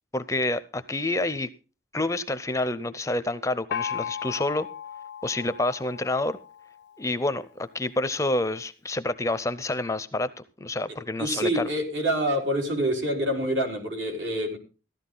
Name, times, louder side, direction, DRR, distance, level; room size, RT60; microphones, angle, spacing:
voice 1, 0.1-1.5 1.9-4.7 5.2-6.4 7.0-10.3 10.6-11.7, left 2 dB, 15° left, 14 dB, 0.5 m, -28 dB
Gong, 3.7-7.2, left 8 dB, 60° left, 0.5 m, -36 dB
voice 2, 11.2-14.6, right 1 dB, 75° right, 1 dB, 4.3 m, -26 dB
15.0 x 12.0 x 3.9 m, 0.34 s
head